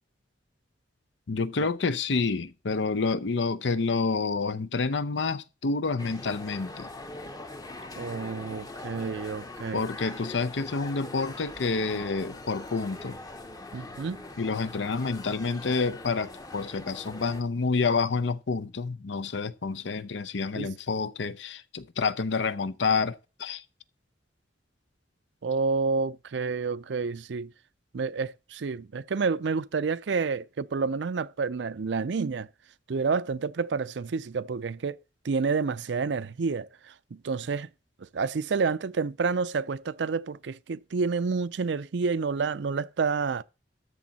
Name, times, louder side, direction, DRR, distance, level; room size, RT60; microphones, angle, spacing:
voice 1, 1.3-6.9 9.7-13.2 14.4-23.6, left 4 dB, 75° left, 0.6 m, -28 dB
sound 1, 6.0-17.4, left 2 dB, 20° left, 0.8 m, -42 dB
voice 2, 8.0-9.8 13.7-14.2 20.6-20.7 25.4-27.5 27.9-32.5 32.9-35.0 35.2-36.7 37.1-37.7 38.1-43.4, right 4 dB, 70° right, 0.5 m, -29 dB
13.5 x 7.2 x 4.1 m
head